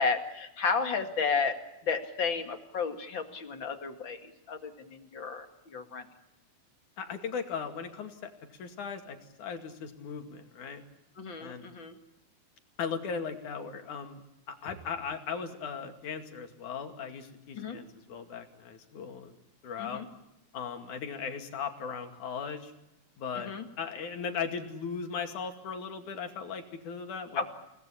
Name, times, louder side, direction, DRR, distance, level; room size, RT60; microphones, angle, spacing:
voice 1, 0.0-1.6 1.8-6.1 11.2-11.9 17.6-17.8 19.8-20.1 23.4-23.7 27.4-27.5, left 5 dB, 40° left, 6 dB, 2.6 m, -32 dB
voice 2, 7.0-8.3 8.6-10.8 11.4-11.7 12.8-19.4 19.6-20.0 20.5-22.7 23.2-23.5 23.8-27.5, left 6 dB, 85° left, 6 dB, 3.8 m, -38 dB
29.5 x 19.0 x 8.6 m, 0.87 s
omnidirectional pair, 3.4 m